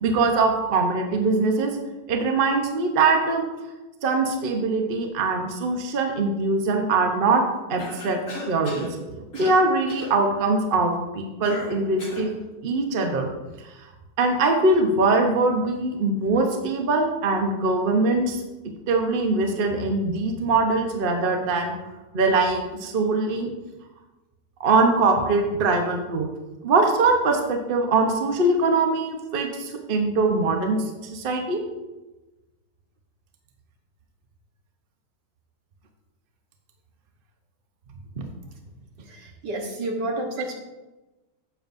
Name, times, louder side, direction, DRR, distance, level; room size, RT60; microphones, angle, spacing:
voice 1, 0.0-1.8 2.1-3.5 4.0-7.4 7.7-8.2 8.5-12.4 12.6-13.3 14.2-18.4 18.9-21.7 22.1-23.5 24.6-26.3 26.6-30.8 31.0-31.6, right 3 dB, 40° right, 3 dB, 0.8 m, -22 dB
Cough, 7.8-8.9 9.3-9.6 9.9-10.2 11.4-12.3, left 2 dB, 45° left, 2.4 m, -37 dB
voice 2, 39.1-40.5, right 1 dB, 75° right, 2 dB, 1.8 m, -30 dB
9.3 x 7.9 x 2.6 m, 1.1 s
omnidirectional pair, 1.9 m